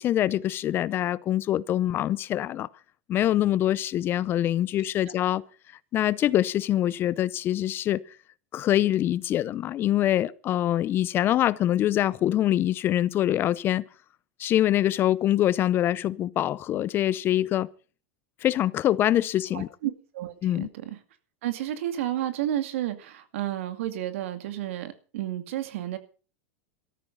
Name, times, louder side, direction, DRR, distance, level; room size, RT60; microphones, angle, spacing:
voice 1, 0.0-2.7 3.1-5.4 5.9-8.0 8.5-13.8 14.4-17.7 18.4-19.7 20.4-20.7, left 12 dB, 30° left, 0.6 m, -24 dB
voice 2, 19.5-21.0 21.4-26.0, right 12 dB, 75° right, 2.4 m, -31 dB
14.0 x 13.5 x 5.5 m
supercardioid pair, 140°, 7 cm